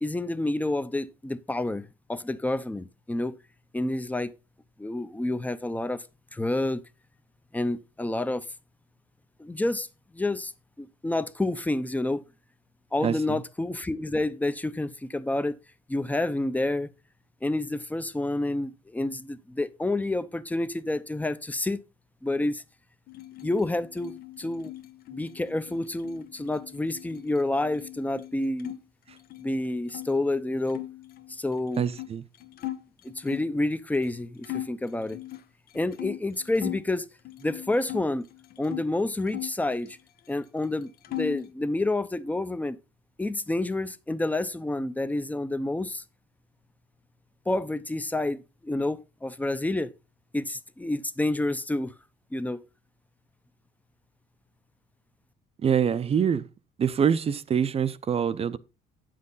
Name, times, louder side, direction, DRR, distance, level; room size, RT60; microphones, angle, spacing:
voice 1, 0.0-3.4 3.7-4.3 4.8-6.1 6.3-6.8 7.5-8.5 9.4-9.9 10.1-10.5 10.8-12.2 12.9-15.6 15.9-16.9 17.4-21.8 22.2-22.6 23.4-24.7 25.1-28.8 29.4-30.8 31.3-31.9 33.0-35.2 35.7-37.1 37.4-38.3 38.6-40.0 40.3-42.8 43.2-46.0 47.5-49.9 50.3-51.9 52.3-52.6, left 2 dB, 10° left, 0.7 m, -29 dB
voice 2, 13.0-13.4 31.8-32.2 55.6-56.5 56.8-58.6, right 7 dB, 35° right, 0.6 m, -25 dB
sound 1, 23.1-28.8 29.1-30.1 30.7-33.6 34.0-34.2 34.4-36.9 37.2-38.9 39.3-40.4 40.6-41.5, left 15 dB, 65° left, 0.8 m, -40 dB
9.4 x 7.6 x 4.0 m
cardioid pair, 110°, 17 cm